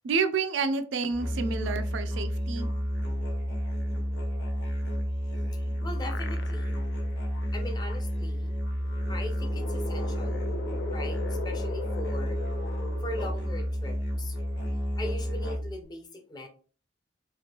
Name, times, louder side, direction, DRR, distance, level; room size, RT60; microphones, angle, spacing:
voice 1, 0.0-2.7, right 5 dB, 85° right, 9 dB, 0.4 m, -29 dB
Musical instrument, 1.1-15.8, equal, 65° left, 1.0 m, -31 dB
sound 1, 5.3-7.0 7.4-7.5 8.8-13.6, left 3 dB, 85° left, 0.4 m, -40 dB
voice 2, 5.8-6.8 7.5-8.5 9.1-10.4 10.9-12.4 13.0-14.4 15.0-16.5, left 2 dB, 20° left, 4 dB, 0.5 m, -40 dB
3.1 x 2.5 x 2.8 m, 0.40 s
head